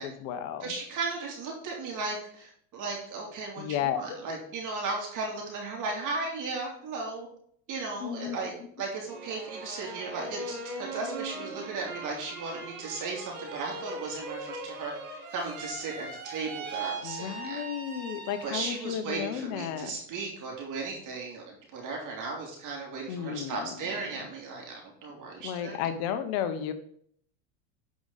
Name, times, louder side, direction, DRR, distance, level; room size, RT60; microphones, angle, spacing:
voice 1, 0.0-0.7 3.6-4.2 8.0-8.4 17.0-19.9 23.1-23.7 25.4-26.7, left 9 dB, 60° left, 10 dB, 1.1 m, -33 dB
voice 2, 0.6-7.3 7.7-8.5 8.8-17.6 18.4-25.8, right 3 dB, 45° right, 0 dB, 3.0 m, -36 dB
sound 1, 9.0-18.8 19.3-19.9, right 3 dB, 90° right, 2.9 m, -40 dB
10.5 x 5.1 x 4.2 m, 0.63 s
hypercardioid pair, 100°, 42 cm